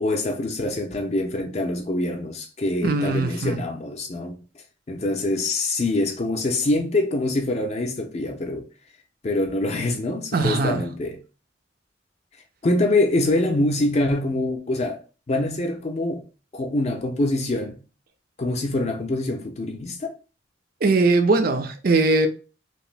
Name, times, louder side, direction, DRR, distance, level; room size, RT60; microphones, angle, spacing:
voice 1, 0.0-4.4 4.9-8.7 9.2-11.2 12.6-16.2 16.5-17.8 18.4-20.2, left 2 dB, 35° left, 0.4 m, -25 dB
voice 2, 2.8-3.6 10.3-10.8 20.8-22.3, right 3 dB, 50° right, 0.5 m, -20 dB
2.9 x 2.6 x 3.2 m
head